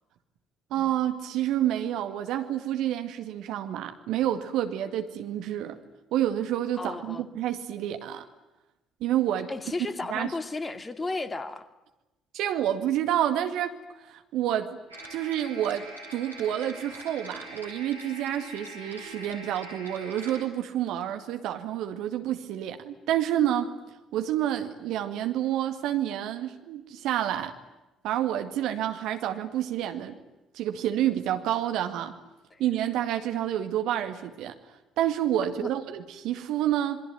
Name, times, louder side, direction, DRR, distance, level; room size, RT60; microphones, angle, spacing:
voice 1, 0.7-5.8 6.1-8.3 9.0-9.5 10.1-10.3 12.3-13.7 14.1-14.8 15.1-23.7 24.1-27.5 28.0-30.2 30.5-32.2 32.6-34.6 35.0-37.0, right 11 dB, 60° right, 7 dB, 2.1 m, -29 dB
voice 2, 6.8-7.3 9.5-11.7 32.5-32.6 35.6-35.7, left 3 dB, 25° left, 10 dB, 2.4 m, -34 dB
sound 1, 14.9-20.4, right 1 dB, 85° right, 4.8 m, -43 dB
27.5 x 23.0 x 9.4 m, 1.0 s
figure-of-eight pair, 45°, 0 cm